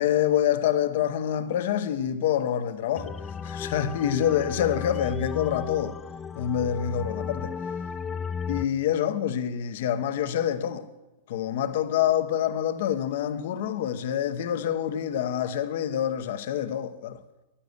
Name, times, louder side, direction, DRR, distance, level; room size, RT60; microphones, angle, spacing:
voice 1, 0.0-3.1 3.4-5.9 6.4-7.5 8.5-10.9 11.3-17.2, left 10 dB, 55° left, 0.8 m, -26 dB
sound 1, 3.0-8.7, left 6 dB, 15° left, 0.4 m, -34 dB
11.5 x 9.9 x 8.0 m
figure-of-eight pair, 95°, 0 cm